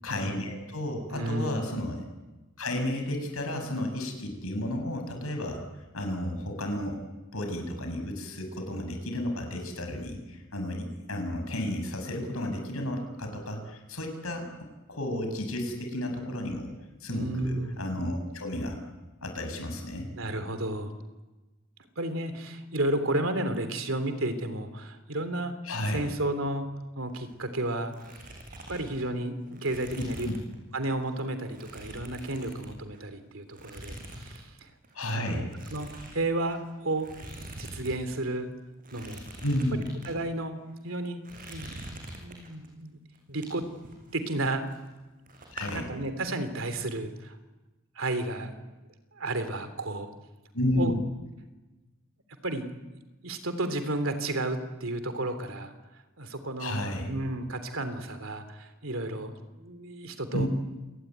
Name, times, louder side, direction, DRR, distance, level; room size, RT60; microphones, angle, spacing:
voice 1, 0.0-2.0 2.6-5.6 5.9-7.0 7.3-14.5 14.9-16.7 17.0-18.8 19.2-20.0 25.7-26.0 29.9-30.4 34.9-35.5 39.4-39.9 45.5-45.8 50.5-51.0 56.6-57.1 60.3-60.5, left 1 dB, 85° left, 4 dB, 7.3 m, -32 dB
voice 2, 1.1-1.8 17.1-17.9 20.2-21.0 22.0-25.6 25.9-26.7 27.0-28.0 28.7-30.3 30.7-34.7 35.3-37.1 37.6-38.5 38.9-39.2 39.7-40.6 40.8-41.2 41.5-41.8 42.1-43.0 43.3-43.7 44.1-44.6 45.7-47.4 47.9-48.7 49.2-50.1 50.7-50.9 52.4-52.7 53.2-55.7 56.2-56.8 57.1-60.5, right 1 dB, 70° right, 9 dB, 3.3 m, -32 dB
sound 1, 27.0-27.6 27.8-30.6 30.9-31.1 31.5-33.1 33.5-34.4 34.7-34.9 35.5-38.0 38.2-38.3 38.8-40.1 40.7-40.9 41.2-42.7 43.1-45.0 45.3-45.8, right 1 dB, 40° right, 6.1 m, -44 dB
28.0 x 19.5 x 9.6 m, 1.1 s
head